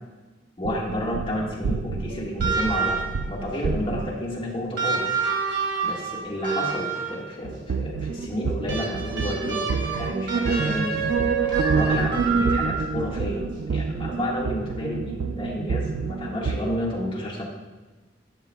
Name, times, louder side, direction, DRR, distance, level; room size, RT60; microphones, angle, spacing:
voice 1, 0.6-5.0 5.4-5.5 5.8-9.7 10.0-11.0 11.3-11.5 11.7-17.4, equal, 30° left, -4 dB, 1.6 m, -30 dB
sound 1, 0.6-4.4 7.4-16.6, right 4 dB, 90° right, 0.3 m, -28 dB
sound 2, 2.4-3.3 4.8-7.3 8.7-13.1 14.5-14.6, right 5 dB, 75° right, 1.9 m, -28 dB
10.5 x 6.8 x 2.2 m, 1.2 s
head